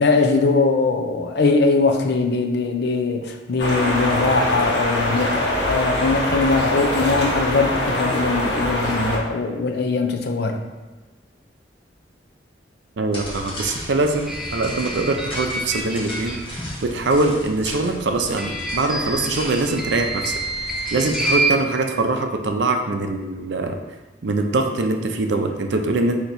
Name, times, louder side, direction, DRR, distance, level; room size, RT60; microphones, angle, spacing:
voice 1, 0.0-10.6, left 3 dB, 65° left, 4 dB, 0.5 m, -21 dB
sound 1, 3.6-9.2, equal, 85° left, 1.1 m, -23 dB
voice 2, 13.0-16.4 16.8-20.3 20.9-23.7 24.2-26.2, right 2 dB, 75° right, 4 dB, 0.5 m, -22 dB
sound 2, 13.1-21.4, left 1 dB, 30° left, 1.4 m, -36 dB
sound 3, 14.2-16.8 18.3-21.5, right 2 dB, ahead, 0.5 m, -27 dB
4.5 x 2.9 x 4.0 m, 1.2 s
head